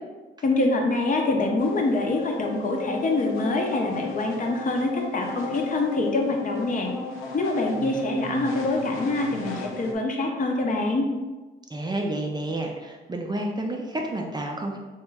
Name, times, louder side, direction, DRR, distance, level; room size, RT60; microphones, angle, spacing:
voice 1, 0.4-6.9 7.3-11.1, left 2 dB, 40° left, 1 dB, 0.6 m, -25 dB
sound 1, 1.6-9.9, left 3 dB, 80° left, 0.6 m, -35 dB
voice 2, 11.7-14.8, right 1 dB, 20° right, 1 dB, 0.4 m, -30 dB
2.9 x 2.2 x 3.4 m, 1.2 s
supercardioid pair, 65°, 21 cm